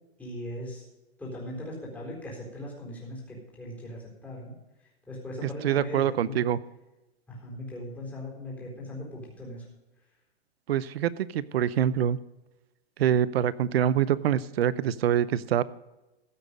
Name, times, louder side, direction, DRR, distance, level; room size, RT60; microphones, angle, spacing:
voice 1, 0.2-0.9 1.2-4.5 5.1-6.4 7.3-9.6, left 1 dB, 5° left, -5 dB, 4.1 m, -39 dB
voice 2, 5.4-6.6 10.7-12.2 13.0-15.6, right 10 dB, 70° right, 18 dB, 0.8 m, -25 dB
15.0 x 8.0 x 5.1 m, 1.0 s
hypercardioid pair, 155°, 32 cm